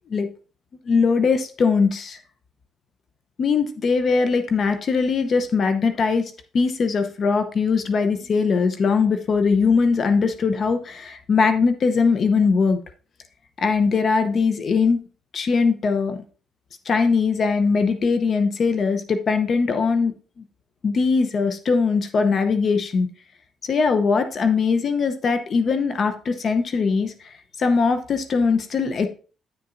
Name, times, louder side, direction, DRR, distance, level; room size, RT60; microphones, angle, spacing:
voice 1, 0.9-2.2 3.4-12.8 13.6-15.0 15.3-16.2 16.9-20.1 20.8-23.1 23.6-29.1, left 5 dB, 50° left, 9 dB, 0.7 m, -21 dB
9.1 x 6.8 x 2.6 m, 0.38 s
cardioid pair, 90°, 0 cm